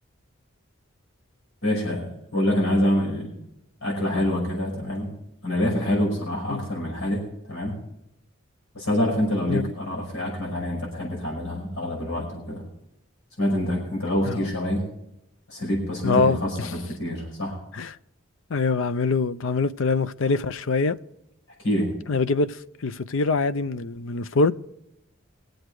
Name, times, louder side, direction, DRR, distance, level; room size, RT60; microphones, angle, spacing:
voice 1, 1.6-3.3 3.8-5.1 5.4-7.2 7.5-7.7 8.7-12.6 13.4-14.8 15.5-17.6 21.6-22.0, left 1 dB, 85° left, 5.6 m, -26 dB
voice 2, 16.0-16.4 17.7-17.9 18.5-21.0 22.1-22.6 22.8-24.5, left 3 dB, 70° left, 0.5 m, -23 dB
22.5 x 7.9 x 4.8 m
head